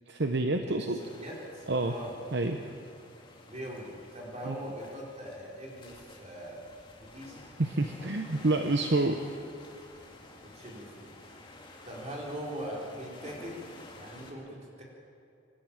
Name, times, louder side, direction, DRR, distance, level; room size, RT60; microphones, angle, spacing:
voice 1, 0.1-1.0 1.7-1.9 2.3-2.6 4.5-4.6 7.6-9.2, right 2 dB, 55° right, 5 dB, 0.9 m, -28 dB
sound 1, 1.0-14.3, left 2 dB, 25° left, 2.3 m, -51 dB
voice 2, 1.2-2.1 3.5-6.6 7.0-7.4 10.4-11.2 11.8-13.6 14.0-14.8, equal, 35° right, -3 dB, 4.1 m, -41 dB
25.5 x 12.5 x 8.9 m, 2.5 s
head